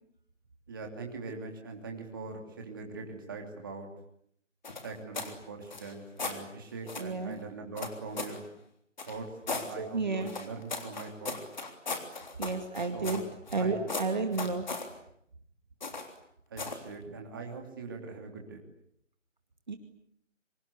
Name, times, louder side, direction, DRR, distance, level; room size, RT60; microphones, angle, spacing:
voice 1, 0.7-3.9 4.8-8.5 9.1-11.4 12.9-13.2 13.6-13.9 16.5-18.6, right 3 dB, 15° right, 2 dB, 2.9 m, -42 dB
sound 1, 4.6-5.4 5.7-6.4 6.9-7.1 7.8-8.4 9.0-9.7 10.3-13.6 13.9-14.9 15.8-16.2 16.6-16.9, left 3 dB, 35° left, 3.5 m, -37 dB
voice 2, 7.0-7.4 9.8-10.4 12.4-13.2 13.5-14.7 17.1-17.2 19.7-19.8, right 4 dB, 35° right, 6 dB, 2.3 m, -32 dB
27.5 x 25.5 x 8.3 m, 0.69 s
figure-of-eight pair, 170°, 38 cm